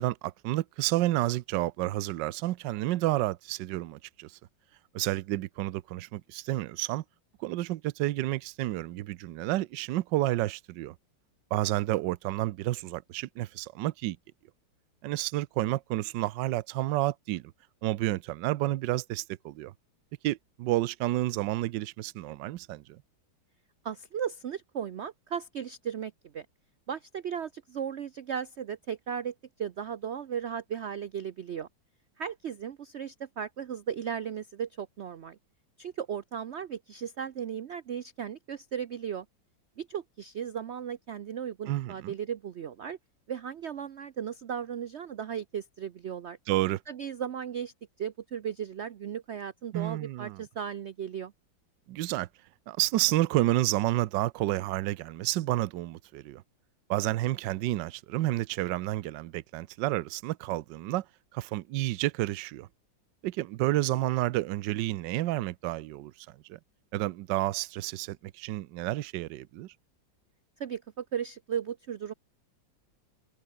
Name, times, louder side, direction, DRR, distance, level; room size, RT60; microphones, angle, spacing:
voice 1, 0.0-4.4 4.9-7.0 7.4-10.9 11.5-14.2 15.0-17.5 17.8-19.7 20.2-23.0 41.6-42.1 46.5-46.8 49.7-50.4 51.9-52.3 52.7-56.4 56.9-61.0 61.3-62.7 63.2-66.6 66.9-69.7, right 16 dB, 75° right, 1.3 m, -30 dB
voice 2, 23.8-26.5 26.9-31.7 32.2-35.4 35.8-39.3 39.8-43.0 43.3-46.4 46.9-51.3 70.6-72.1, right 8 dB, 90° right, 0.5 m, -36 dB
omnidirectional pair, 2.1 m